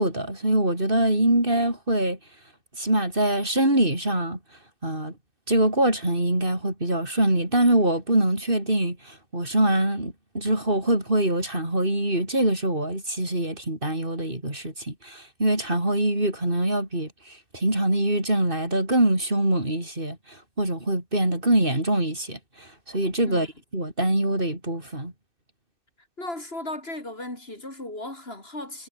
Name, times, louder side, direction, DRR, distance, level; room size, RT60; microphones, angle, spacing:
voice 1, 0.0-2.2 2.8-4.4 4.8-5.1 5.5-23.5 23.7-25.1, right 1 dB, 45° right, 6.4 m, -24 dB
voice 2, 26.2-28.9, left 1 dB, 50° left, 5.2 m, -36 dB
omnidirectional pair, 1.3 m